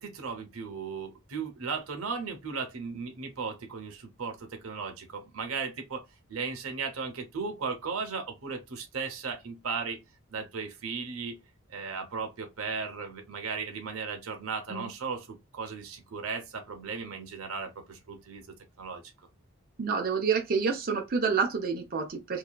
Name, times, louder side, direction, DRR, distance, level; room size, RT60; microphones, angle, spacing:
voice 1, 0.0-6.0 6.3-10.0 10.3-11.4 11.7-19.0, right 5 dB, 90° right, 0.8 m, -36 dB
voice 2, 19.8-22.4, right 5 dB, 45° right, 0.6 m, -28 dB
2.8 x 2.4 x 2.2 m
head